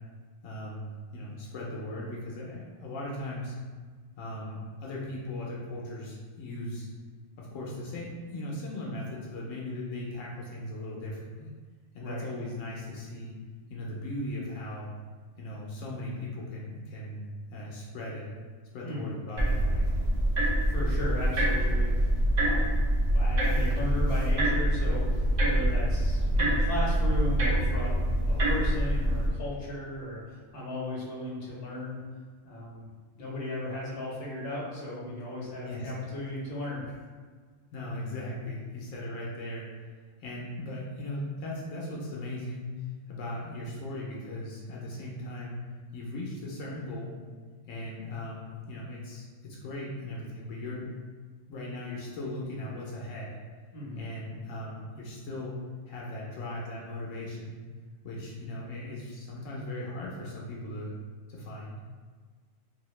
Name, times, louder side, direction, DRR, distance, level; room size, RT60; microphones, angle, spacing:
voice 1, 0.4-3.6 4.2-6.9 7.4-11.5 11.9-13.3 13.7-14.9 15.4-18.3 18.7-19.9 35.7-35.9 37.7-39.7 40.2-42.7 43.1-45.6 45.9-47.2 47.7-51.0 51.5-53.4 54.0-55.5 55.9-57.6 58.0-60.9 61.3-61.8, left 1 dB, 85° left, -4 dB, 1.0 m, -38 dB
voice 2, 18.8-19.2 20.7-22.1 22.4-22.8 23.1-32.0 32.4-32.9 33.2-36.8 53.7-54.0, left 1 dB, 50° left, -6 dB, 1.1 m, -36 dB
sound 1, 19.4-29.3, right 1 dB, 45° right, 0.6 m, -25 dB
2.7 x 2.7 x 3.1 m, 1.5 s
omnidirectional pair, 1.3 m